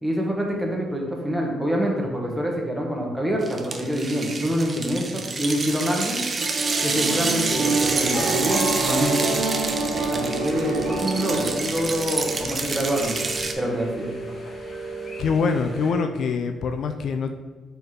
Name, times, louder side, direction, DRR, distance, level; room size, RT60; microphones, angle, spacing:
voice 1, 0.0-6.2 6.8-9.2 10.1-13.1 13.6-14.1, equal, 5° right, -1 dB, 1.4 m, -26 dB
sound 1, 3.4-13.5, right 3 dB, 35° right, 0.6 m, -28 dB
sound 2, 6.4-11.5, right 4 dB, 85° right, 0.7 m, -27 dB
sound 3, 7.2-15.9, equal, 35° left, 1.6 m, -34 dB
voice 2, 15.2-17.4, left 5 dB, 65° left, 7 dB, 0.4 m, -24 dB
4.5 x 4.4 x 4.8 m, 1.2 s
cardioid pair, 90°, 0 cm